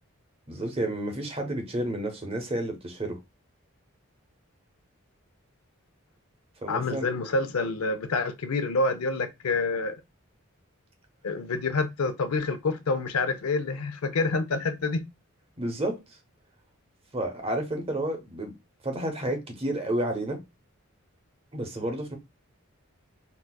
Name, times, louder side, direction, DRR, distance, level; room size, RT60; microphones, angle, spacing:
voice 1, 0.5-3.2 6.6-7.1 15.6-16.0 17.1-18.5 18.8-20.4 21.5-22.1, right 1 dB, 25° right, 0.7 m, -30 dB
voice 2, 6.7-10.0 11.2-15.1, left 3 dB, 90° left, 0.5 m, -27 dB
4.0 x 2.3 x 2.2 m
head